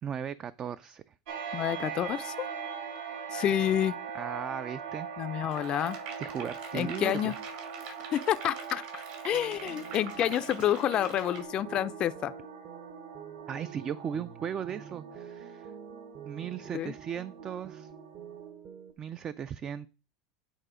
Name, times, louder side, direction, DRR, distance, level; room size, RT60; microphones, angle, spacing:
voice 1, 0.0-1.1 4.1-5.1 6.2-7.3 13.5-15.7 16.2-17.9 19.0-19.9, right 8 dB, 30° right, 0.3 m, -37 dB
sound 1, 1.3-18.5, right 6 dB, 75° right, 2.9 m, -42 dB
voice 2, 1.5-2.5 3.3-3.9 5.2-6.0 6.7-7.3 8.1-12.3 16.7-16.9, left 11 dB, 35° left, 0.4 m, -29 dB
sound 2, 5.5-11.4, right 5 dB, 60° right, 2.6 m, -45 dB
sound 3, 9.3-18.9, right 9 dB, 45° right, 1.0 m, -48 dB
9.0 x 4.0 x 5.0 m
supercardioid pair, 120°, 3 cm